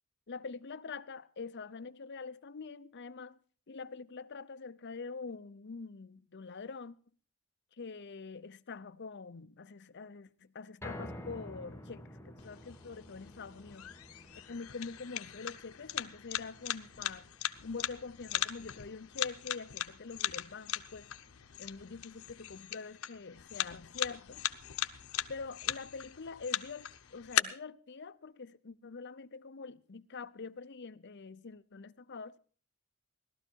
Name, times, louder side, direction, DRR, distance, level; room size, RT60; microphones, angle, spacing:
voice 1, 0.3-3.4 3.7-6.9 7.7-13.9 14.5-17.3 17.6-21.1 21.6-24.5 25.3-32.4, left 4 dB, 55° left, 0.7 m, -45 dB
sound 1, 10.8-23.1 23.5-23.6 24.0-24.1, left 1 dB, 10° left, 1.3 m, -52 dB
sound 2, 12.4-27.4, left 11 dB, 90° left, 0.8 m, -39 dB
17.5 x 12.5 x 4.6 m
head